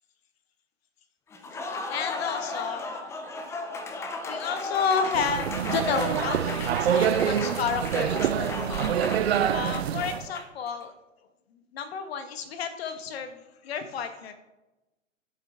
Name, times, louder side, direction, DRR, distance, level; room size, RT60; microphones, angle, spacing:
Applause, 1.3-10.7, left 3 dB, 5° left, 0.6 m, -35 dB
voice 1, 1.9-2.8 4.2-8.9 9.5-10.9 11.7-14.3, left 6 dB, 50° left, 8 dB, 1.5 m, -31 dB
sound 1, 5.1-10.3, right 9 dB, 55° right, 0.6 m, -26 dB
11.0 x 8.3 x 3.5 m, 1.0 s
figure-of-eight pair, 115°, 39 cm